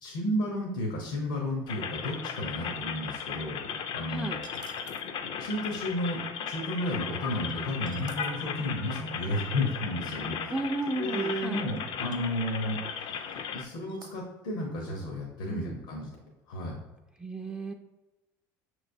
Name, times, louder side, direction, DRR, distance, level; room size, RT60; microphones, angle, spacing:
voice 1, 0.0-3.6 3.9-4.4 5.2-10.5 11.0-12.8 13.5-16.2 16.5-16.8, left 1 dB, 80° left, -1 dB, 0.9 m, -32 dB
sound 1, 1.7-13.6, left 7 dB, 55° left, 0.4 m, -36 dB
sound 2, 4.4-5.1 7.5-7.6 7.8-8.3 10.9-11.0 11.3-11.4 11.8-11.9 12.1-12.2 12.9-13.4 13.8-14.2, right 5 dB, 40° right, 0.7 m, -51 dB
voice 2, 10.5-11.6 15.5-15.8 17.2-17.7, right 2 dB, 10° right, 3 dB, 0.3 m, -34 dB
6.0 x 3.1 x 2.6 m, 1.1 s
hypercardioid pair, 70°, 10 cm